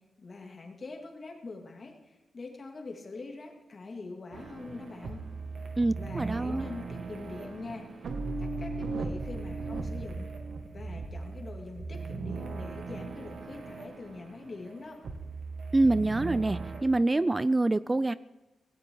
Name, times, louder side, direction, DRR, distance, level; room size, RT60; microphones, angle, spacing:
voice 1, 0.2-5.2 5.9-8.1 8.4-10.4 10.7-15.0, left 3 dB, 45° left, 2 dB, 2.7 m, -43 dB
sound 1, 4.3-16.8, right 3 dB, 65° right, 2.1 m, -38 dB
voice 2, 5.8-6.6 15.7-18.1, right 2 dB, 20° right, 17 dB, 0.4 m, -26 dB
17.5 x 16.5 x 3.9 m, 1.1 s
cardioid pair, 85°, 0 cm